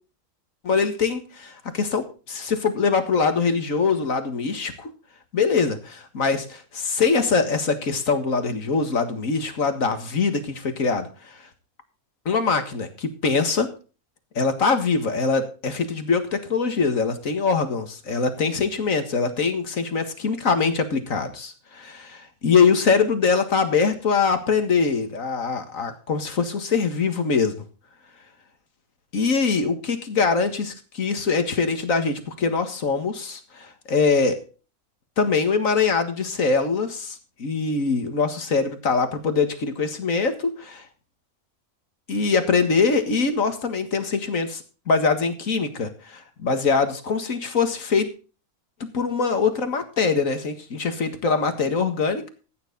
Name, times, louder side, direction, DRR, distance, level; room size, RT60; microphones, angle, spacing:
voice 1, 0.6-4.9 5.3-11.4 12.3-13.7 14.4-27.6 29.1-34.4 35.2-40.8 42.1-48.1 48.8-52.3, left 5 dB, 65° left, 8 dB, 2.1 m, -23 dB
15.0 x 9.5 x 4.0 m, 0.35 s
omnidirectional pair, 1.5 m